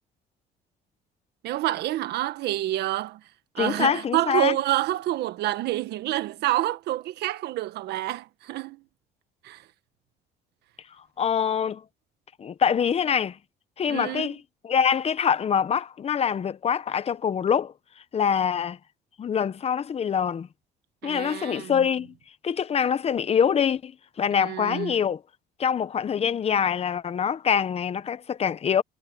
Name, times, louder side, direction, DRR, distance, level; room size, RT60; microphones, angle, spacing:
voice 1, 1.4-3.2 3.5-8.8 9.4-9.6 13.9-14.3 21.0-21.8 24.3-25.0, right 14 dB, 75° right, 1.6 m, -28 dB
voice 2, 3.6-4.6 11.2-11.8 12.4-13.4 13.8-14.4 14.6-17.7 18.1-18.8 19.2-20.5 21.0-22.1 22.4-23.9 24.2-25.2 25.6-28.8, left 7 dB, 35° left, 1.0 m, -24 dB
cardioid pair, 110°, 17 cm